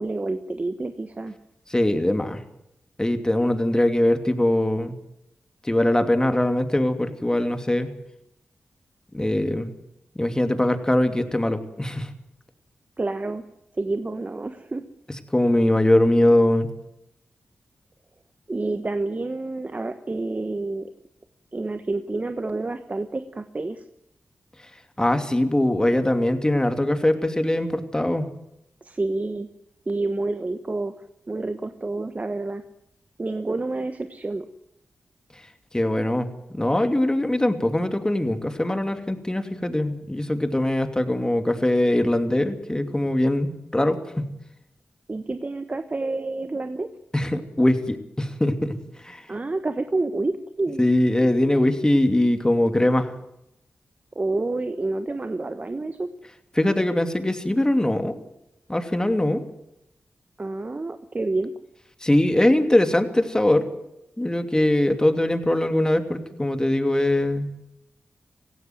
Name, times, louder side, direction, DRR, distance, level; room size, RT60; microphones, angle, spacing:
voice 1, 0.0-1.3 13.0-13.4 13.8-14.8 18.5-20.9 21.5-23.8 28.8-29.5 29.9-30.9 31.3-32.6 33.2-34.5 45.1-46.9 49.3-50.9 54.1-56.1 60.4-61.5, right 2 dB, 35° right, 10 dB, 1.2 m, -28 dB
voice 2, 1.7-2.4 3.0-4.9 5.6-7.9 9.1-9.7 10.2-12.1 15.3-16.7 25.0-28.3 35.7-36.3 36.5-44.3 47.1-49.2 50.8-53.1 56.6-58.1 58.7-59.4 62.0-63.7 64.2-67.5, left 1 dB, 15° left, 8 dB, 2.8 m, -22 dB
18.5 x 15.5 x 9.3 m, 0.83 s
cardioid pair, 45°, 4 cm